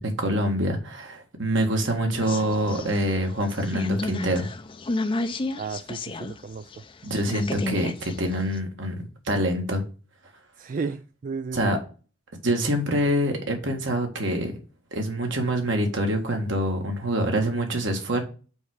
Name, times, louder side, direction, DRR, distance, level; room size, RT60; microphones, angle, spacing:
voice 1, 0.0-4.5 7.0-9.8 11.5-11.8 12.4-14.5 14.9-18.2, right 1 dB, 65° right, 1.7 m, -25 dB
sound 1, 2.2-6.4 6.7-8.6, left 2 dB, 25° left, 0.5 m, -32 dB
voice 2, 5.6-6.7 10.6-11.7, right 5 dB, 40° right, 0.3 m, -33 dB
5.4 x 4.8 x 6.4 m
head